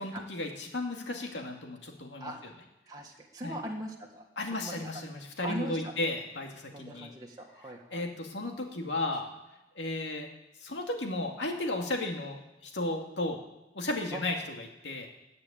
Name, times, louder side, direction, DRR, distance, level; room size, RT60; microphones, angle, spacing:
voice 1, 0.0-2.3 3.4-3.5 4.4-7.1 7.9-9.3 9.8-10.3 10.6-13.4 13.7-15.1, left 2 dB, 80° left, 2 dB, 2.4 m, -34 dB
voice 2, 2.9-4.3 4.6-4.9 5.4-5.9 6.7-8.1 14.1-14.2, right 1 dB, 20° right, -1 dB, 1.7 m, -40 dB
18.0 x 6.9 x 8.8 m, 0.97 s
head